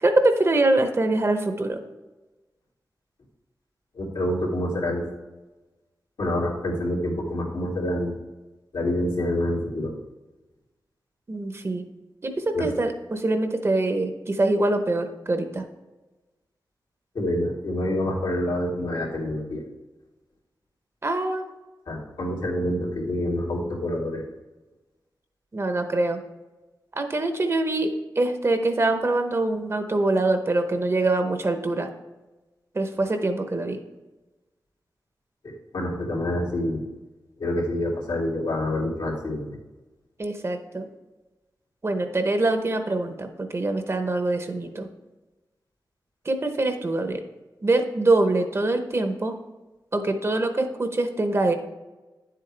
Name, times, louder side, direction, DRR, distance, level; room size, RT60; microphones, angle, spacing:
voice 1, 0.0-1.8 11.3-11.8 12.2-15.6 21.0-21.5 25.5-26.2 26.9-31.9 32.7-33.8 40.2-40.9 41.8-44.9 46.2-47.2 47.6-49.3 49.9-51.5, right 2 dB, 35° right, 6 dB, 0.9 m, -24 dB
voice 2, 3.9-5.0 6.2-8.2 8.7-9.9 12.5-12.7 17.1-19.6 21.9-24.2 35.7-36.8 37.4-39.4, left 1 dB, 85° left, -4 dB, 2.7 m, -27 dB
9.9 x 7.7 x 3.4 m, 1.1 s
wide cardioid pair, 115°, 8 cm